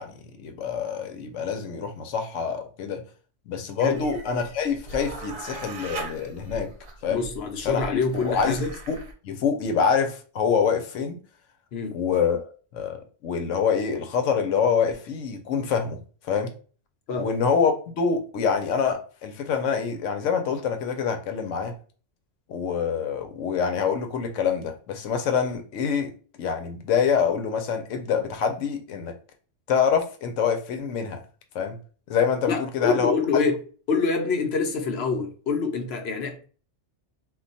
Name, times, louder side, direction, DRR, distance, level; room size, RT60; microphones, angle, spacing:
voice 1, 0.0-3.0 3.5-6.7 7.0-7.2 7.6-8.6 8.9-9.0 9.2-11.2 11.9-12.4 12.7-16.0 16.2-16.5 17.2-21.7 22.5-26.1 26.4-29.2 29.7-31.2 31.5-31.8 32.1-33.1, left 6 dB, 90° left, 1.0 m, -26 dB
sound 1, 3.9-9.1, right 3 dB, 60° right, 0.8 m, -39 dB
voice 2, 7.1-8.7 11.7-12.0 17.1-17.3 32.5-33.6 33.9-36.5, left 4 dB, 65° left, 0.9 m, -26 dB
2.4 x 2.3 x 3.9 m
omnidirectional pair, 1.2 m